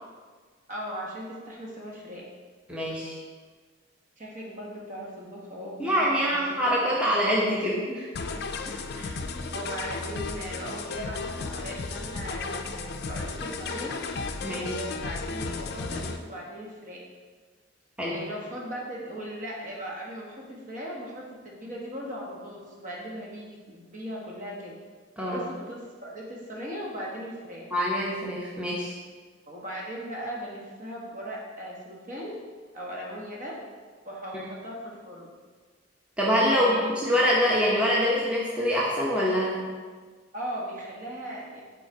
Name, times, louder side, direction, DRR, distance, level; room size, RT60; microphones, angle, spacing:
voice 1, 0.7-2.2 4.2-6.6 7.0-7.1 7.8-8.0 8.3-14.0 14.6-17.0 18.0-24.7 25.2-27.7 29.5-32.4 32.7-33.6 34.0-35.3 36.5-37.1 40.3-41.6, equal, 45° right, -3 dB, 1.3 m, -38 dB
voice 2, 2.7-3.2 5.8-7.8 14.4-14.7 18.0-18.2 25.2-25.4 27.7-28.9 36.2-39.7, equal, 5° right, -6 dB, 0.8 m, -25 dB
sound 1, 8.1-16.2, left 4 dB, 55° left, 0.4 m, -34 dB
5.4 x 4.0 x 4.6 m, 1.5 s
head